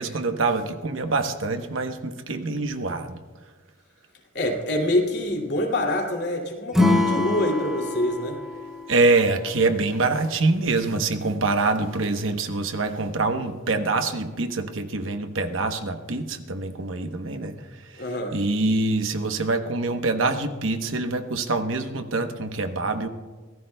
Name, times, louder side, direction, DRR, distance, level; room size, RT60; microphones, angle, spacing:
voice 1, 0.0-3.2 8.9-17.5 17.9-18.0 18.3-23.1, right 3 dB, 65° right, 7 dB, 1.0 m, -25 dB
voice 2, 4.3-8.4 18.0-18.4, left 1 dB, 55° left, 1 dB, 2.6 m, -25 dB
Acoustic guitar / Strum, 6.7-10.0, left 2 dB, 5° right, 2.0 m, -25 dB
24.5 x 17.5 x 2.3 m, 1.4 s
head